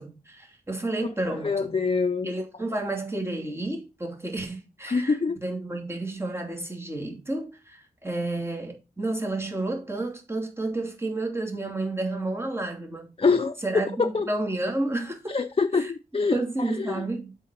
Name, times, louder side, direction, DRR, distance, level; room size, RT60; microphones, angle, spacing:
voice 1, 0.0-1.8 2.2-13.1 13.6-15.4 15.7-15.9 16.3-17.3, right 2 dB, 15° right, 2.6 m, -31 dB
voice 2, 1.2-2.3 4.9-5.4 13.2-13.6 14.0-14.3 15.3-17.0, left 4 dB, 35° left, 0.6 m, -25 dB
8.0 x 4.1 x 6.7 m
wide cardioid pair, 110°, 16 cm